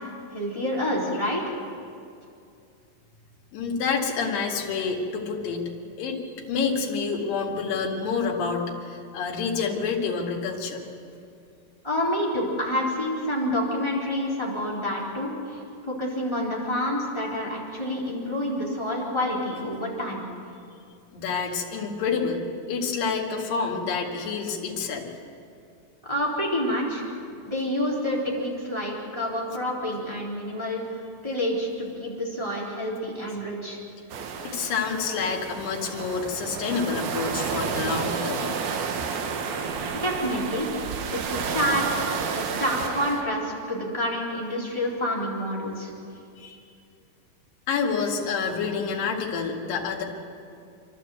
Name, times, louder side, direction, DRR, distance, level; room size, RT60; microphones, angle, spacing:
voice 1, 0.3-1.5 11.8-20.3 26.0-27.1 27.4-33.8 40.0-40.7 41.1-41.8 42.3-45.9, equal, 10° left, -4 dB, 3.4 m, -28 dB
voice 2, 3.5-5.7 6.0-6.2 6.5-10.8 21.1-25.1 34.4-38.5 46.4-46.6 47.7-50.0, left 5 dB, 70° left, -1 dB, 3.7 m, -28 dB
sound 1, 34.1-43.2, right 6 dB, 90° right, 3.2 m, -31 dB
27.5 x 12.5 x 8.0 m, 2.5 s
omnidirectional pair, 4.2 m